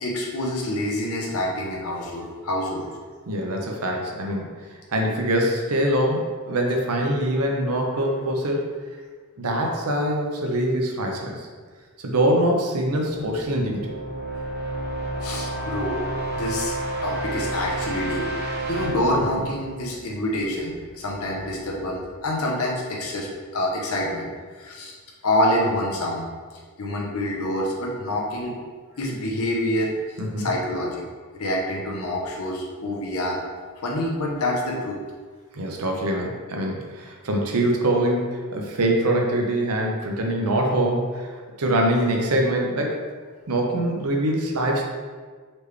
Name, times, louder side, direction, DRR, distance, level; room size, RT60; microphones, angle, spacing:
voice 1, 0.0-2.9 15.2-16.0 16.3-16.7 17.0-18.3 18.7-24.3 24.6-24.9 25.2-26.3 26.8-28.5 29.0-29.9 30.4-31.0 31.3-33.4 33.8-35.0, left 1 dB, 75° left, -2 dB, 0.9 m, -26 dB
voice 2, 3.3-4.5 4.9-8.6 9.4-11.5 12.0-13.9 30.2-30.5 35.5-43.0 43.5-44.8, right 1 dB, 85° right, 1 dB, 0.8 m, -24 dB
sound 1, 13.1-20.8, right 1 dB, 45° right, 0.7 m, -31 dB
4.2 x 3.2 x 3.3 m, 1.5 s
head